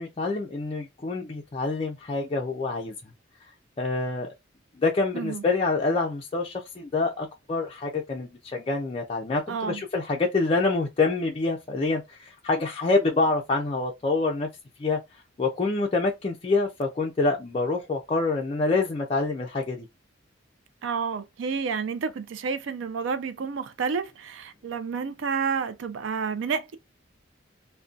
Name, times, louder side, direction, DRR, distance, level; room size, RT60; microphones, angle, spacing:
voice 1, 0.0-2.9 3.8-4.3 4.8-14.5 14.8-15.0 15.4-19.9, left 3 dB, 30° left, 0.3 m, -26 dB
voice 2, 9.5-9.8 20.8-26.8, right 5 dB, 75° right, 0.4 m, -30 dB
2.5 x 2.1 x 2.4 m
head